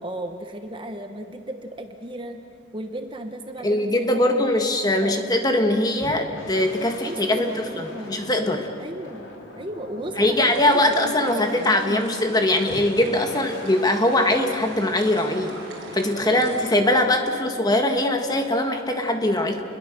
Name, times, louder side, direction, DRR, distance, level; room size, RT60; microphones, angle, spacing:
voice 1, 0.0-2.4 2.7-4.4 5.0-5.1 7.1-8.2 8.8-9.3 9.6-12.2 16.2-16.5, right 1 dB, 25° right, 6 dB, 1.1 m, -34 dB
voice 2, 3.6-8.7 10.2-15.5 15.9-19.6, left 1 dB, 20° left, 4 dB, 1.7 m, -21 dB
sound 1, 6.0-11.9 12.7-17.2, left 1 dB, 80° left, 4.1 m, -41 dB
sound 2, 10.3-16.7, right 3 dB, 60° right, 5.1 m, -41 dB
29.5 x 21.5 x 6.8 m, 2.6 s
head